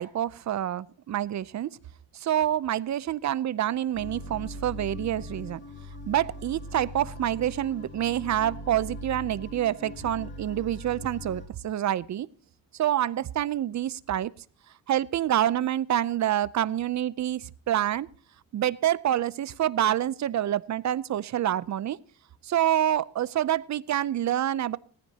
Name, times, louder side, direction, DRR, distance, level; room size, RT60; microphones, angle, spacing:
voice 1, 0.0-1.7 2.1-5.6 6.1-12.3 12.7-14.3 14.9-18.1 18.5-22.0 22.4-24.8, right 11 dB, 50° right, 19 dB, 0.6 m, -27 dB
sound 1, 3.9-11.5, left 1 dB, 30° left, 3.0 m, -40 dB
18.5 x 14.5 x 2.8 m, 0.44 s
cardioid pair, 130°, 37 cm